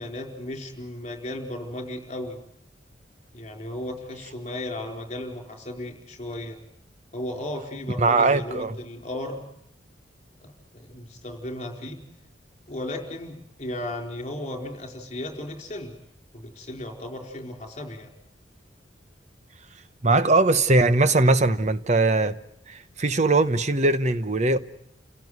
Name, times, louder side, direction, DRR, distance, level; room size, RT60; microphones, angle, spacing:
voice 1, 0.0-2.4 3.3-6.6 7.1-9.4 10.4-12.0 12.7-15.9 16.3-18.1, left 1 dB, 40° left, 4.6 m, -35 dB
voice 2, 8.0-8.8 20.0-22.4 22.7-24.6, right 2 dB, 40° right, 0.9 m, -20 dB
29.5 x 17.5 x 9.5 m
head